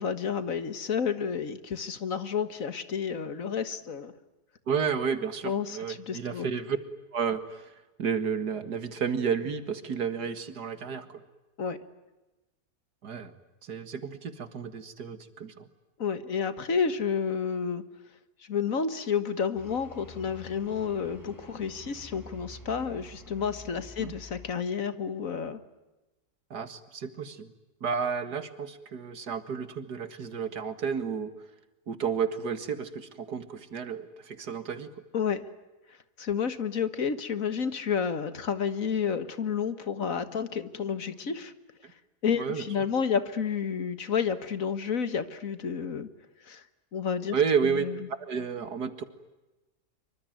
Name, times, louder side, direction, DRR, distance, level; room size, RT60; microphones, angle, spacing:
voice 1, 0.0-4.1 5.4-6.5 11.6-11.8 16.0-17.8 18.5-25.6 35.1-35.5 36.2-41.5 42.2-46.1 46.5-46.6 46.9-47.4 47.6-47.9, left 6 dB, 55° left, 12 dB, 1.8 m, -30 dB
voice 2, 4.7-6.8 7.1-7.7 8.0-11.2 13.0-13.3 13.6-15.7 24.0-24.1 26.5-27.5 27.8-31.3 31.9-34.9 41.8-41.9 42.4-42.6 47.3-47.9 48.2-49.0, right 6 dB, 85° right, 11 dB, 2.5 m, -31 dB
sound 1, 19.5-24.5, equal, 10° left, 6.2 m, -48 dB
26.5 x 24.5 x 9.3 m, 1.1 s
omnidirectional pair, 1.7 m